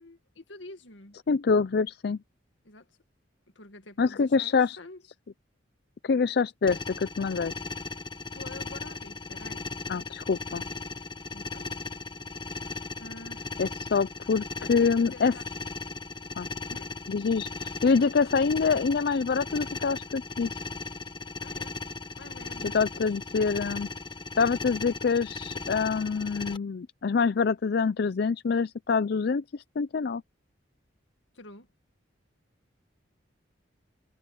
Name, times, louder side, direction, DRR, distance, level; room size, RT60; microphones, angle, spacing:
voice 1, 0.0-1.2 2.6-3.0 3.6-5.0 8.3-9.7 11.3-11.8 13.0-13.5 14.6-15.5 16.7-16.9 21.4-21.8 22.2-23.0 31.3-31.7, left 2 dB, 80° left, 2.0 m, -47 dB
voice 2, 1.3-2.2 4.0-4.8 6.0-7.5 9.9-10.6 13.6-15.4 16.4-16.5 17.1-20.5 22.6-23.9 24.4-30.2, left 5 dB, 55° left, 0.4 m, -26 dB
sound 1, 6.7-26.6, left 3 dB, 25° left, 1.1 m, -37 dB
head